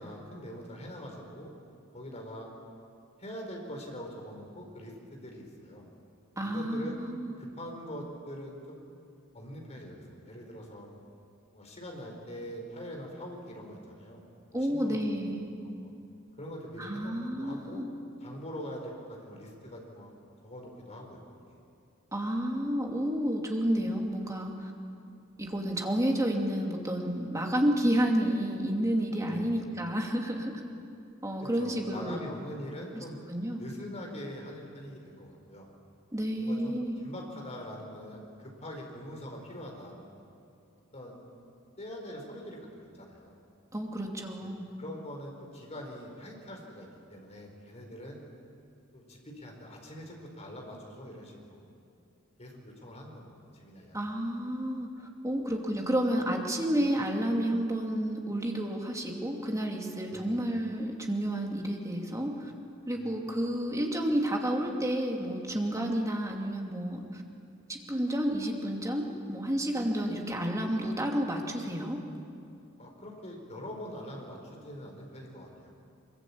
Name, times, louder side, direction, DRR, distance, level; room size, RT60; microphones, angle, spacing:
voice 1, 0.0-1.5 1.9-2.5 3.2-5.9 6.3-7.0 7.4-8.8 9.3-10.9 11.5-14.2 14.5-15.2 15.6-15.9 16.4-17.8 18.2-20.1 20.4-21.2 21.5-21.6 29.3-29.5 31.4-33.2 33.6-35.7 36.4-40.1 40.9-41.2 41.8-43.4 44.4-44.5 44.8-48.2 48.9-51.6 52.4-54.0 60.1-60.4 62.9-63.3 72.8-75.7, equal, 30° left, 1 dB, 4.6 m, -43 dB
voice 2, 6.4-7.3 14.5-15.4 16.8-17.9 22.1-24.7 25.4-30.5 31.2-32.2 33.0-33.6 36.1-37.0 43.7-44.6 53.9-62.5 62.9-67.2 67.7-72.0, equal, 15° right, 1 dB, 2.6 m, -30 dB
24.0 x 22.5 x 8.6 m, 2.5 s
head